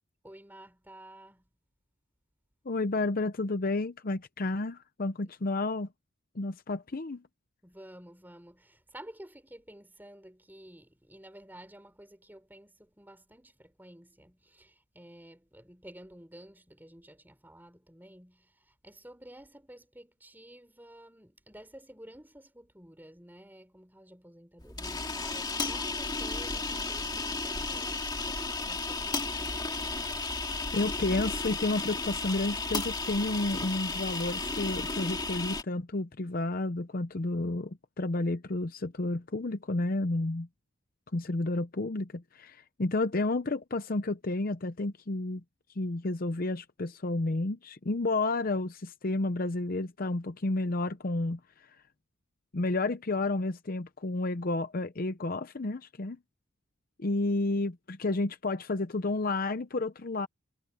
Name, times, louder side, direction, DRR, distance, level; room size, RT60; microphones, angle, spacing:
voice 1, 0.2-1.5 7.6-29.6, right 1 dB, 10° right, 4.7 m, -52 dB
voice 2, 2.7-5.9 6.4-7.2 30.7-40.5 41.1-45.4 45.8-51.4 52.5-56.2 57.0-60.3, left 2 dB, 45° left, 0.7 m, -31 dB
sound 1, 24.6-35.6, left 3 dB, 20° left, 2.2 m, -33 dB
head